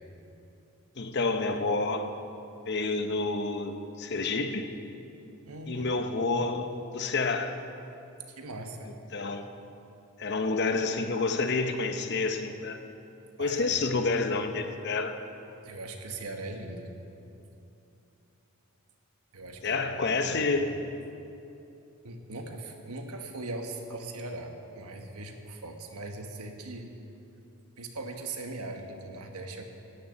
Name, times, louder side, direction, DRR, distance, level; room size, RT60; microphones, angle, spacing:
voice 1, 1.0-2.2 2.7-4.7 5.7-7.6 9.1-9.5 10.2-12.8 13.4-15.2 19.6-20.8, left 3 dB, 50° left, 7 dB, 0.8 m, -29 dB
voice 2, 5.5-5.9 8.3-8.9 13.4-13.7 15.6-16.9 19.3-20.6 22.0-26.9 27.8-29.6, right 2 dB, 80° right, 4 dB, 1.3 m, -40 dB
13.0 x 6.8 x 8.9 m, 2.8 s
head